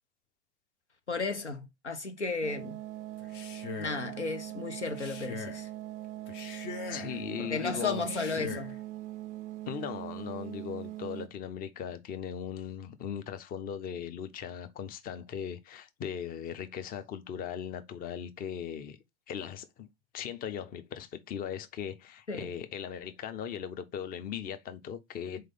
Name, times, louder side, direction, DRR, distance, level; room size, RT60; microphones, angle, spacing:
voice 1, 1.1-2.8 3.8-5.7 7.4-8.7 22.3-22.5, left 4 dB, 85° left, 0.8 m, -34 dB
sound 1, 2.4-11.3, right 15 dB, 25° right, 0.4 m, -41 dB
Male speech man speaking, 3.2-4.1 4.9-5.7 6.3-7.2 8.0-8.8, left 5 dB, 45° left, 1.0 m, -42 dB
voice 2, 6.9-8.5 9.7-19.0 19.3-19.9 20.1-25.5, left 8 dB, 25° left, 0.7 m, -38 dB
4.3 x 3.2 x 3.8 m
figure-of-eight pair, 90°, 34 cm